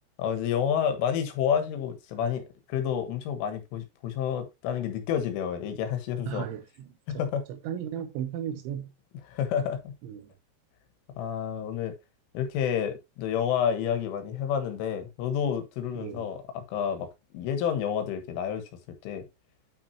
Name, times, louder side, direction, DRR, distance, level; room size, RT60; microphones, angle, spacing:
voice 1, 0.2-6.5 7.1-7.4 9.3-9.9 11.2-12.0 12.4-17.1 17.3-18.6 19.0-19.3, left 8 dB, 85° left, 3.9 m, -29 dB
voice 2, 6.3-8.9 10.0-10.3 16.0-16.2, right 9 dB, 80° right, 3.2 m, -36 dB
9.3 x 6.0 x 2.9 m
omnidirectional pair, 5.6 m